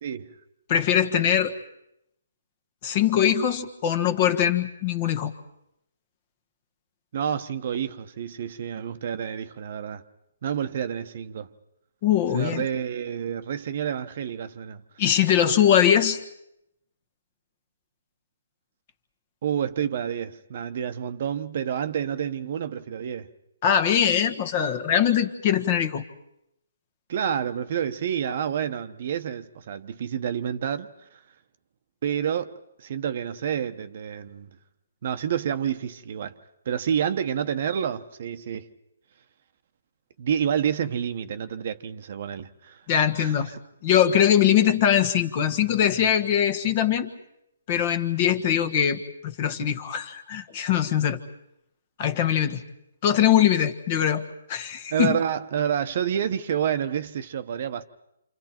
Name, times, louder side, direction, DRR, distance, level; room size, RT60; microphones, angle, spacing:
voice 1, 0.0-0.3 7.1-10.0 10.4-11.5 12.3-14.8 19.4-23.3 27.1-30.9 32.0-34.5 35.0-36.3 36.7-38.7 40.2-42.8 43.2-43.4 54.9-57.8, right 8 dB, 50° right, 1.0 m, -29 dB
voice 2, 0.7-1.5 2.8-5.3 12.0-12.6 15.0-16.2 23.6-26.0 42.9-43.5 43.8-47.1 47.7-51.2 52.0-52.6 53.0-54.2 54.5-55.2, left 9 dB, 35° left, 1.5 m, -22 dB
28.5 x 27.5 x 4.5 m
hypercardioid pair, 155°, 0 cm